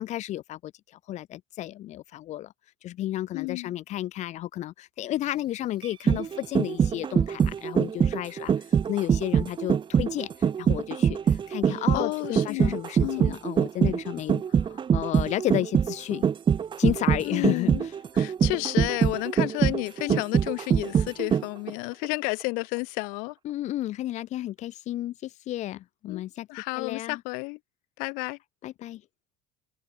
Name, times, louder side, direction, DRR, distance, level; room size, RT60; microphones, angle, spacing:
voice 1, 0.0-2.5 2.8-16.3 16.8-17.9 20.0-20.2 23.4-26.5 26.7-27.2 28.6-29.0, left 14 dB, 55° left, 2.4 m, -32 dB
voice 2, 3.3-3.7 11.7-13.4 17.2-17.9 18.1-23.3 26.1-26.2 26.5-27.6 28.0-28.4, left 31 dB, 70° left, 3.0 m, -31 dB
sound 1, 5.8-21.7 22.0-22.1, right 7 dB, 35° right, 2.2 m, -24 dB
supercardioid pair, 90°, 14 cm